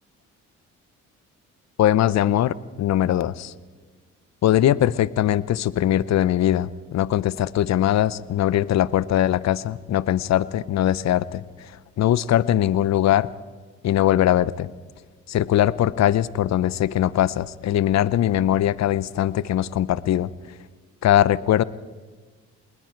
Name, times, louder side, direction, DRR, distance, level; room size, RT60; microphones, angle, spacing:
voice 1, 1.8-3.5 4.4-11.4 12.0-13.3 13.8-14.7 15.3-20.3 21.0-21.6, left 12 dB, 60° left, 18 dB, 0.7 m, -21 dB
28.0 x 20.0 x 4.6 m, 1.5 s
cardioid pair, 90°, 30 cm